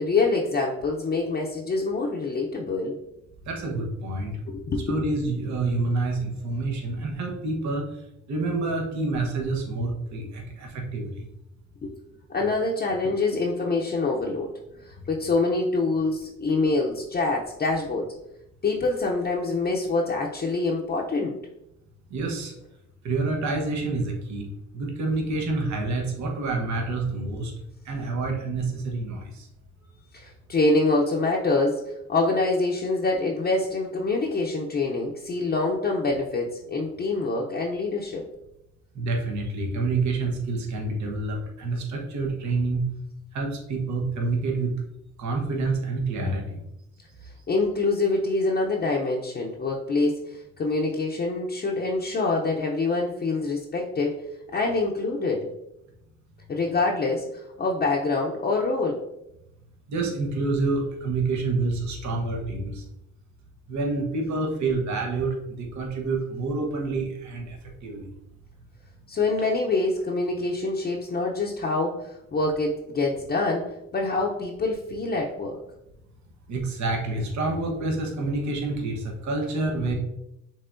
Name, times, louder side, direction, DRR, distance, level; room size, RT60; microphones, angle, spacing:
voice 1, 0.0-3.0 4.5-5.0 11.8-11.9 12.3-18.1 18.6-21.4 30.1-38.2 47.5-54.2 54.5-55.5 56.5-59.0 69.1-75.6, left 3 dB, 30° left, -2 dB, 0.6 m, -25 dB
voice 2, 3.5-4.4 4.9-7.9 8.3-11.2 22.1-22.5 23.0-24.5 24.7-27.5 27.9-29.5 38.9-42.8 43.3-44.7 45.2-46.6 59.9-62.8 63.7-67.6 67.8-68.1 76.5-79.9, right 3 dB, 70° right, 1 dB, 1.1 m, -28 dB
5.5 x 3.5 x 2.6 m, 0.86 s
cardioid pair, 90°, 30 cm